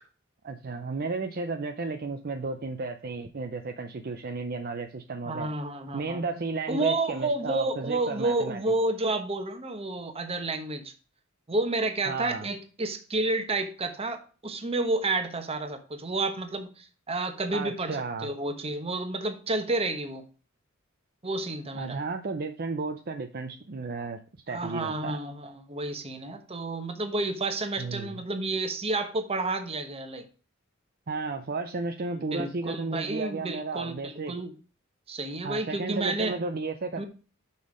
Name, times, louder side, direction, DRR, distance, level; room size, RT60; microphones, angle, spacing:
voice 1, 0.4-5.5 5.9-8.6 12.1-12.5 17.5-18.3 21.7-24.2 24.5-25.2 27.8-28.2 31.1-34.3 35.4-37.0, right 3 dB, 45° right, 5 dB, 0.6 m, -33 dB
voice 2, 5.2-6.2 6.7-10.9 11.5-20.2 21.2-22.0 24.5-30.2 32.1-34.5 35.1-36.4 37.0-37.1, right 2 dB, 30° right, 7 dB, 1.1 m, -30 dB
6.3 x 5.6 x 5.0 m, 0.36 s
head